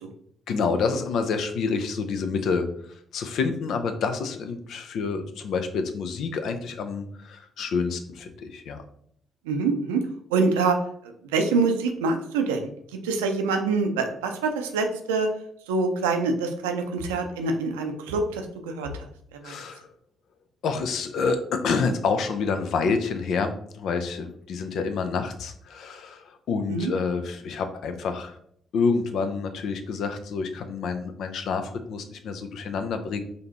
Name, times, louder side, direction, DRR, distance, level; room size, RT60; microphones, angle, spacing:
voice 1, 0.5-8.8 19.4-19.9 20.6-28.4 28.7-33.2, left 5 dB, 65° left, 8 dB, 0.5 m, -28 dB
voice 2, 9.4-10.0 10.3-10.8 11.3-12.7 13.0-15.3 15.7-18.9 19.4-19.5 26.7-26.9, right 4 dB, 85° right, 4 dB, 0.5 m, -25 dB
5.0 x 2.7 x 2.9 m, 0.67 s
hypercardioid pair, 50°, 0 cm